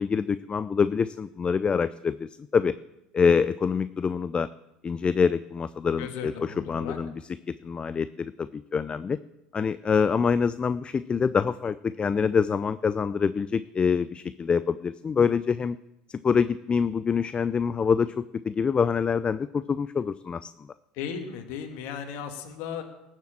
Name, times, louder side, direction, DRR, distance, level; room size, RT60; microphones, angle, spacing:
voice 1, 0.0-2.7 3.1-4.5 4.8-7.1 7.5-9.2 9.5-15.8 16.1-20.5, left 6 dB, 25° left, 15 dB, 0.5 m, -25 dB
voice 2, 6.0-7.0 20.9-22.8, left 7 dB, 60° left, 5 dB, 2.3 m, -36 dB
19.0 x 7.4 x 7.6 m, 0.89 s
hypercardioid pair, 75°, 4 cm